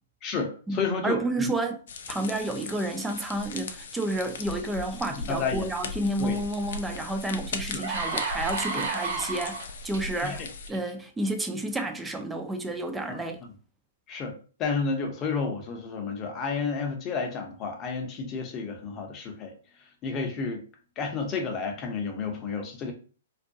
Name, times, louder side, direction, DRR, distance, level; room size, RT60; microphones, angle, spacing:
voice 1, 0.2-1.5 5.3-5.7 6.2-6.4 7.7-7.8 8.7-8.9 10.2-10.4 13.1-13.2 14.1-14.3 14.6-19.5 20.0-20.6 21.0-22.9, left 5 dB, 30° left, 0.7 m, -31 dB
voice 2, 1.0-1.8 2.1-10.4 10.7-13.4, right 2 dB, 10° right, 0.4 m, -30 dB
sound 1, 1.9-10.7, left 3 dB, 65° left, 0.4 m, -38 dB
sound 2, 7.1-7.2 7.6-10.0 10.7-10.9, right 4 dB, 60° right, 0.6 m, -32 dB
2.3 x 2.2 x 2.6 m
figure-of-eight pair, 115°, 0 cm